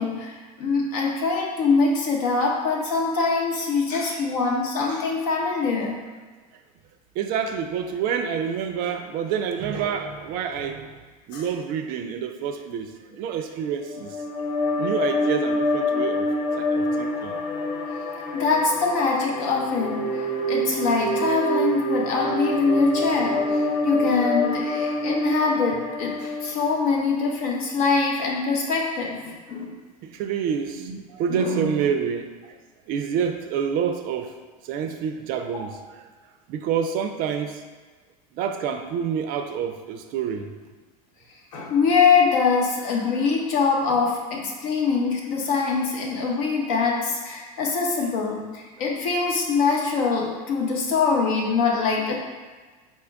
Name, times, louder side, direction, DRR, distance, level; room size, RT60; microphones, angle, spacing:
voice 1, 0.0-6.0 11.3-11.4 18.3-29.7 30.8-31.0 31.3-31.7 35.5-35.6 41.5-52.2, left 4 dB, 70° left, -1 dB, 0.9 m, -23 dB
voice 2, 7.2-10.9 11.3-14.2 14.8-16.3 16.6-17.4 30.0-32.5 32.9-34.4 34.6-36.0 36.5-37.6 38.3-40.5, right 7 dB, 45° right, 6 dB, 0.4 m, -28 dB
sound 1, 13.8-27.2, left 1 dB, 40° left, 0.6 m, -26 dB
4.2 x 2.2 x 3.5 m, 1.4 s
hypercardioid pair, 90°, 20 cm